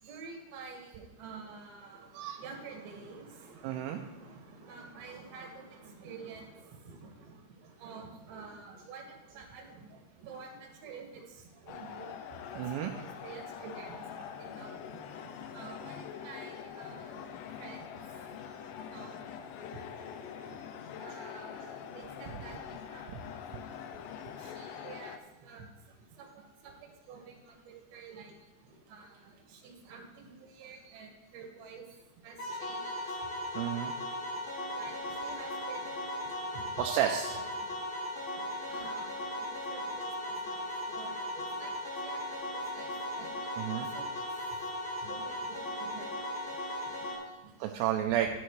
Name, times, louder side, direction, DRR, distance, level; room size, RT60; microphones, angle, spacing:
voice 1, 0.0-23.2 23.5-23.8 24.3-33.3 34.5-36.7 37.6-47.8, right 5 dB, 65° right, 2 dB, 3.4 m, -50 dB
voice 2, 3.6-4.0 12.6-12.9 32.9-33.0 33.6-33.9 36.8-37.4 43.6-43.9 47.6-48.3, right 11 dB, 85° right, 4 dB, 2.7 m, -31 dB
sound 1, 11.7-25.2, left 8 dB, 85° left, 2.8 m, -44 dB
sound 2, 32.4-47.2, left 1 dB, 55° left, 4.4 m, -37 dB
13.0 x 10.0 x 3.2 m, 1.2 s
omnidirectional pair, 4.9 m